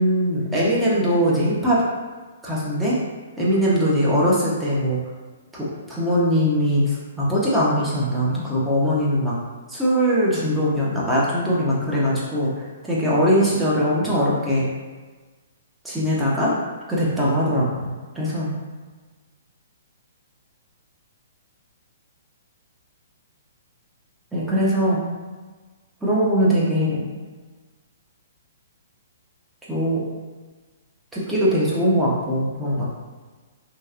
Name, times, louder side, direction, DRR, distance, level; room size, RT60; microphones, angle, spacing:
voice 1, 0.0-1.8 2.4-3.0 3.4-5.0 5.5-9.4 9.7-14.7 15.8-16.6 16.9-18.5 24.3-25.0 26.0-27.1 29.7-30.0 31.1-32.9, equal, 5° right, -7 dB, 0.7 m, -21 dB
2.8 x 2.3 x 2.4 m, 1.3 s
figure-of-eight pair, 125°, 0 cm